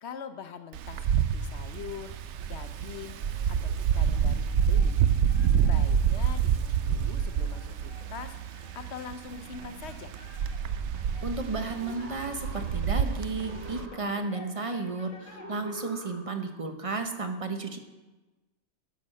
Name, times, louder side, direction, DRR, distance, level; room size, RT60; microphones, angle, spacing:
voice 1, 0.0-2.1 2.4-3.2 3.5-5.0 5.5-8.4 8.7-10.1, left 6 dB, 60° left, 10 dB, 0.9 m, -43 dB
Wind, 0.7-13.9, right 8 dB, 65° right, 0.8 m, -27 dB
sound 1, 2.5-15.8, left 4 dB, 80° left, 1.9 m, -52 dB
voice 2, 11.2-17.8, right 3 dB, 30° right, 6 dB, 0.7 m, -33 dB
sound 2, 11.6-13.0 13.3-14.6 15.3-16.6, right 1 dB, 10° right, 1.5 m, -45 dB
11.0 x 6.0 x 6.4 m, 1.1 s
omnidirectional pair, 1.4 m